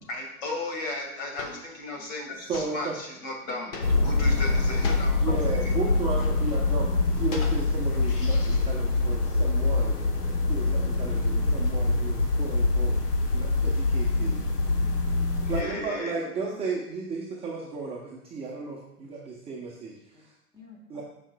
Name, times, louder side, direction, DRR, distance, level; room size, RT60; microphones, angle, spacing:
voice 1, 0.0-5.7 15.4-16.3, left 2 dB, 45° left, 1 dB, 2.1 m, -35 dB
sound 1, 1.4-1.7 2.5-2.8 3.7-4.2 4.8-5.2 6.0-6.6 7.3-8.0, left 4 dB, 60° left, 1.5 m, -38 dB
voice 2, 2.5-2.9 5.2-10.0 10.5-13.0 13.3-14.4 15.5-20.0 20.9-21.0, right 4 dB, 15° right, -4 dB, 0.8 m, -34 dB
sound 2, 3.8-15.6, left 3 dB, 90° left, 1.2 m, -24 dB
voice 3, 14.5-15.3 16.5-16.6 19.0-19.1 20.1-20.2 20.5-21.0, left 2 dB, 10° left, -2 dB, 1.5 m, -52 dB
13.5 x 5.1 x 2.3 m, 0.83 s
hypercardioid pair, 120°, 45 cm